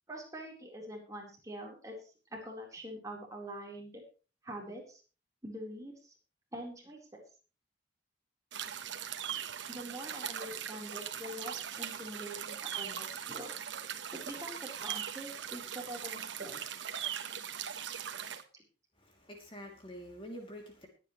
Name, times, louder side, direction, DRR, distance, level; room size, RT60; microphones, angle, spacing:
voice 1, 0.1-4.0 4.4-5.0 5.4-6.1 6.5-7.2 9.7-13.5 14.1-16.6 18.5-18.6, right 1 dB, 20° right, -1 dB, 4.1 m, -45 dB
sound 1, 8.5-18.4, right 9 dB, 85° right, 1.2 m, -40 dB
voice 2, 19.0-20.9, equal, 30° left, 1 dB, 2.9 m, -47 dB
21.0 x 9.3 x 3.2 m, 0.35 s
head